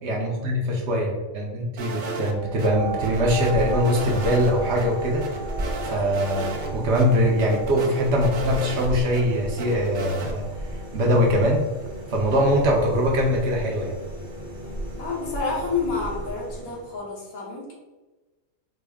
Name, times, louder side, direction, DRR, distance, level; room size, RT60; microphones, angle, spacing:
voice 1, 0.0-5.2 5.8-10.5 10.9-11.6 12.1-13.9, equal, 65° right, -1 dB, 0.9 m, -22 dB
sound 1, 1.8-2.7 3.0-4.5 4.8-4.9 5.2-6.7 6.9-7.0 7.4-9.2 9.6-10.3, right 3 dB, 80° right, 0.4 m, -34 dB
sound 2, 2.3-11.5 12.2-12.3, right 5 dB, 65° left, 1.2 m, -38 dB
sound 3, 2.4-17.1, right 1 dB, 25° right, 0.6 m, -35 dB
voice 2, 5.9-6.6 14.9-17.7, left 4 dB, 85° left, -3 dB, 1.5 m, -30 dB
4.1 x 2.0 x 3.4 m, 1.2 s
omnidirectional pair, 1.4 m